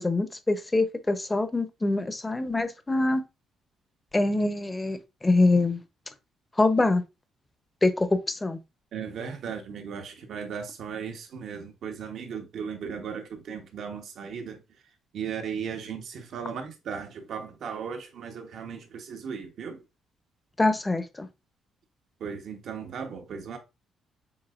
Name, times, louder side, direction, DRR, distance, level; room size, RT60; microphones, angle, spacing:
voice 1, 0.0-3.2 4.1-5.8 6.6-7.0 7.8-8.6 20.6-21.3, left 2 dB, 20° left, 0.8 m, -24 dB
voice 2, 8.9-14.6 15.1-19.8 22.2-23.6, right 6 dB, 70° right, 1.2 m, -36 dB
7.1 x 2.8 x 2.5 m
cardioid pair, 90°, 0 cm